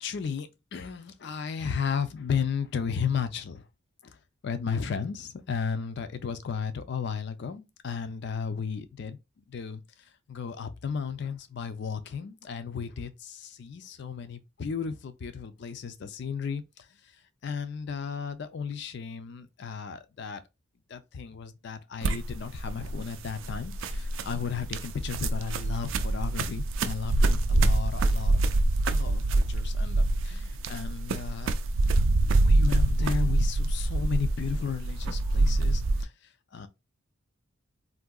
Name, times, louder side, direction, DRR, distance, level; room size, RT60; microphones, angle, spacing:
voice 1, 0.0-3.6 4.0-4.2 4.4-9.2 9.5-9.8 10.3-16.9 17.4-20.4 20.9-28.4 28.9-31.5 32.4-36.1 36.5-36.7, left 6 dB, 55° left, 0.4 m, -34 dB
sound 1, 22.0-36.0, right 2 dB, 65° right, 0.4 m, -25 dB
3.7 x 2.7 x 2.2 m
head